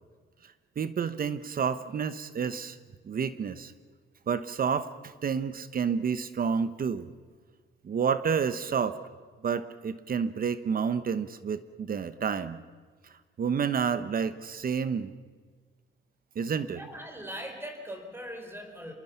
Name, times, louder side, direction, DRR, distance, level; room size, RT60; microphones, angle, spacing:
voice 1, 0.8-2.8 3.0-3.7 4.3-7.1 7.8-9.0 9.4-12.6 13.4-15.1 16.3-16.8, right 6 dB, 45° right, 13 dB, 1.0 m, -29 dB
voice 2, 16.7-18.9, equal, 10° right, 5 dB, 4.5 m, -40 dB
27.0 x 21.5 x 5.8 m, 1.5 s
cardioid pair, 90°, 20 cm